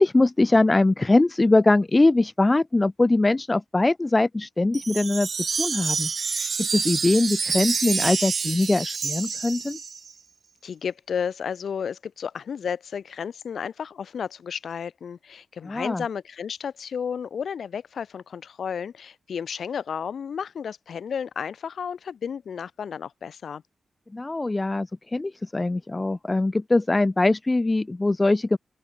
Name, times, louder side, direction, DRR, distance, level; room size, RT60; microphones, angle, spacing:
voice 1, 0.0-5.3 5.6-9.8 15.6-16.0 24.1-28.6, left 2 dB, 20° left, 0.9 m, -22 dB
Wind chime, 4.7-10.1, right 5 dB, 50° right, 0.8 m, -28 dB
voice 2, 10.6-23.6, left 7 dB, 70° left, 7.1 m, -32 dB
open air
wide cardioid pair, 100°, 0 cm